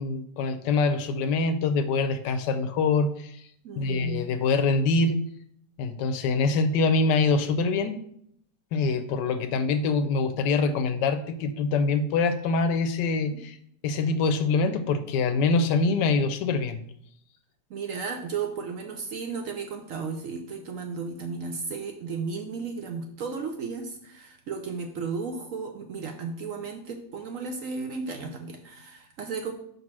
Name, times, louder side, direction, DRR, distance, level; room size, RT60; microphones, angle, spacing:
voice 1, 0.0-3.4 3.8-5.2 5.8-8.0 8.7-13.6 13.8-16.8, left 4 dB, 85° left, 10 dB, 1.3 m, -24 dB
voice 2, 3.6-4.3 13.3-13.4 17.7-29.5, right 5 dB, 65° right, 5 dB, 0.8 m, -34 dB
5.3 x 4.0 x 6.0 m, 0.70 s
omnidirectional pair, 1.9 m